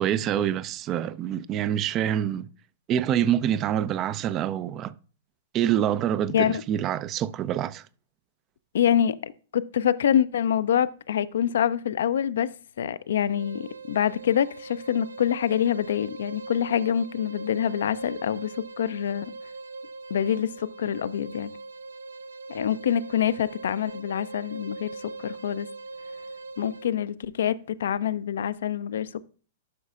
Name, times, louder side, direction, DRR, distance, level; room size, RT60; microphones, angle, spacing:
voice 1, 0.0-2.5 2.9-4.9 5.5-7.9, right 10 dB, 30° right, 0.4 m, -26 dB
voice 2, 8.7-12.5 12.8-19.3 20.1-21.5 22.5-25.7 26.6-29.3, left 9 dB, 60° left, 0.4 m, -26 dB
sound 1, 13.3-27.0, right 3 dB, 75° right, 0.6 m, -41 dB
11.0 x 6.2 x 2.4 m
figure-of-eight pair, 105°, 0 cm